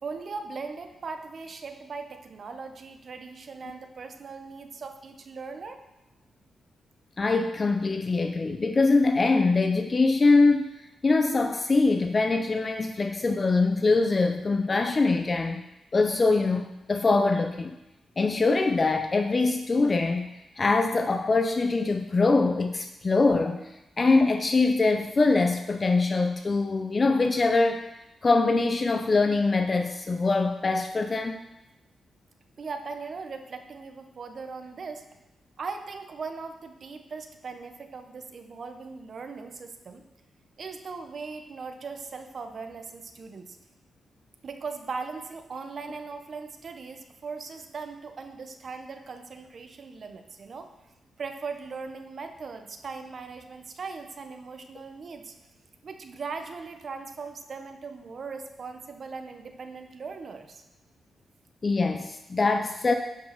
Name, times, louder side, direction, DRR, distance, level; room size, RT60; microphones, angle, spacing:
voice 1, 0.0-5.8 32.6-35.0 35.6-40.0 40.6-43.6 44.4-50.7 51.2-55.3 55.8-60.6, right 4 dB, 55° right, 6 dB, 1.0 m, -39 dB
voice 2, 7.2-10.7 11.0-15.6 15.9-17.8 18.2-20.3 20.6-23.6 24.0-27.8 28.2-31.4 61.6-62.9, left 3 dB, 35° left, 5 dB, 0.7 m, -23 dB
10.0 x 5.5 x 5.9 m, 0.93 s
cardioid pair, 75°, 0 cm